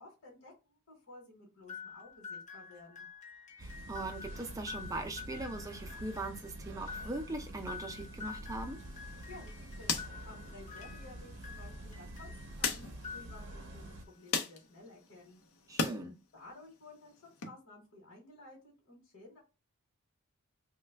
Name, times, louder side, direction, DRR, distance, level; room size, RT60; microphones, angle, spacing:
voice 1, 0.0-3.1 9.3-10.0 10.2-15.4 16.0-19.4, left 2 dB, 60° left, 1.1 m, -54 dB
sound 1, 1.7-12.5 12.9-13.8, left 6 dB, 35° left, 0.7 m, -49 dB
voice 2, 3.6-8.8 15.7-16.1, right 2 dB, 15° right, 0.4 m, -40 dB
sound 2, 3.6-14.0, right 1 dB, 55° right, 0.6 m, -47 dB
sound 3, 8.8-16.0 16.4-17.5, left 5 dB, 85° left, 0.6 m, -40 dB
3.1 x 2.2 x 3.3 m
head